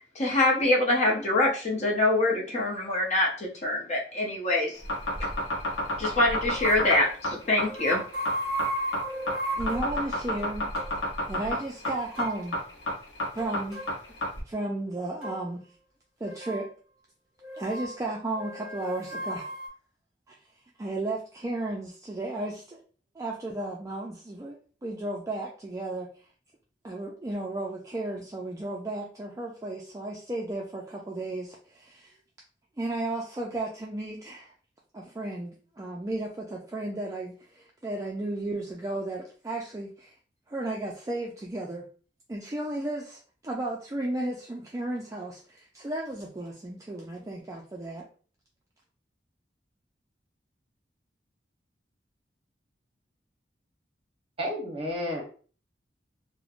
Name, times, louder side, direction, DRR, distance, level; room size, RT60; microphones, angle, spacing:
voice 1, 0.0-4.8 6.0-8.0, left 2 dB, 40° left, -2 dB, 0.7 m, -25 dB
sound 1, 4.8-14.4, left 1 dB, 90° left, 0.8 m, -30 dB
sound 2, 6.5-7.1 7.7-9.9 10.4-10.5 10.7-10.9 11.8-12.4 13.4-13.9 15.2-15.4 16.2-16.6 17.4-17.9 18.4-19.7, right 1 dB, ahead, 1.5 m, -34 dB
voice 2, 9.5-10.7 11.3-12.6 13.3-13.8 14.5-15.6 16.2-16.7 17.6-19.6 20.3-20.4 20.8-22.8 23.2-24.6 24.8-26.1 26.8-32.1 32.8-34.5 34.9-40.1 40.5-41.8 42.3-48.0, right 2 dB, 20° right, -2 dB, 0.3 m, -34 dB
voice 3, 54.4-55.2, left 1 dB, 35° right, -1 dB, 0.8 m, -31 dB
3.0 x 2.1 x 2.4 m, 0.40 s
head